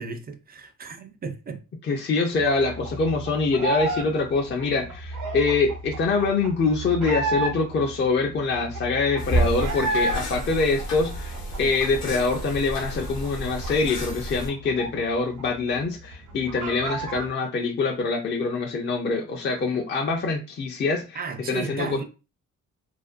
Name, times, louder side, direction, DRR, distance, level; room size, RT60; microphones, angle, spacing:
voice 1, 0.0-1.6 21.1-22.0, right 5 dB, 30° right, 0.4 m, -34 dB
voice 2, 1.8-22.0, left 4 dB, 35° left, 0.4 m, -25 dB
sound 1, 2.4-4.1 4.3-7.9 8.3-8.4 8.5-10.2 10.5-12.2 12.5-12.7 13.0-15.4 15.7-15.8 16.1-17.3, right 2 dB, 80° right, 0.9 m, -30 dB
sound 2, 9.2-14.5, right 1 dB, 65° left, 0.9 m, -30 dB
2.5 x 2.1 x 2.4 m
cardioid pair, 90°, 30 cm